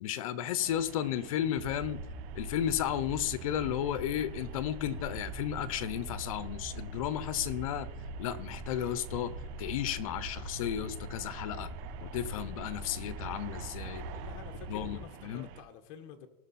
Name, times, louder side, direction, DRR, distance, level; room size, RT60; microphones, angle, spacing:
voice 1, 0.0-2.0 2.3-7.9 8.2-11.7 12.0-14.0 14.7-15.5, left 11 dB, 80° left, 0.9 m, -33 dB
sound 1, 0.6-15.6, right 10 dB, 60° right, 1.2 m, -50 dB
sound 2, 1.5-15.0, right 2 dB, 85° right, 4.1 m, -42 dB
voice 2, 14.1-16.3, left 8 dB, 55° left, 1.3 m, -49 dB
18.0 x 6.3 x 4.3 m
supercardioid pair, 130°, 17 cm